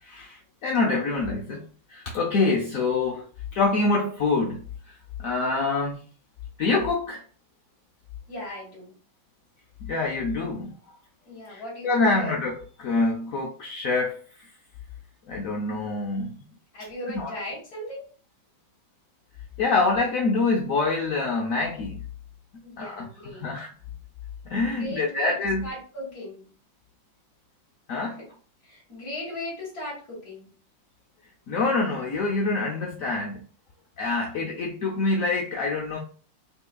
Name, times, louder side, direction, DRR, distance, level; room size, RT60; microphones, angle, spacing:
voice 1, 0.0-3.3 3.5-4.9 5.2-6.0 6.6-7.2 9.8-10.8 11.5-14.5 15.3-16.4 17.0-17.3 19.6-22.0 22.8-23.7 24.4-25.7 27.9-28.2 31.5-33.4 34.0-36.0, left 3 dB, 70° left, 0.8 m, -26 dB
voice 2, 8.3-9.0 11.3-12.3 16.7-18.0 22.6-23.5 24.7-25.4 25.6-26.5 28.6-30.5, left 1 dB, 50° left, 2.7 m, -37 dB
5.5 x 2.8 x 2.3 m
omnidirectional pair, 2.1 m